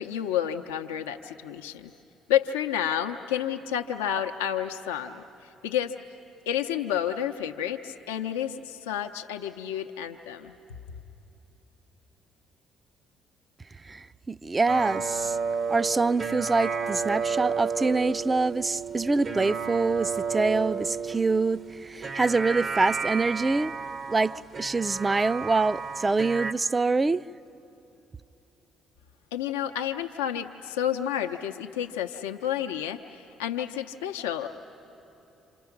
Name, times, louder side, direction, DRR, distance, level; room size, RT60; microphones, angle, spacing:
voice 1, 0.0-1.9 2.3-5.9 6.5-10.5 29.3-34.5, left 10 dB, 85° left, 0.6 m, -30 dB
voice 2, 13.8-15.4 15.7-23.7 24.1-27.2, right 3 dB, 25° right, 0.4 m, -25 dB
sound 1, 14.7-26.5, right 5 dB, 45° right, 0.8 m, -32 dB
27.5 x 27.0 x 5.9 m
hypercardioid pair, 50°, 0 cm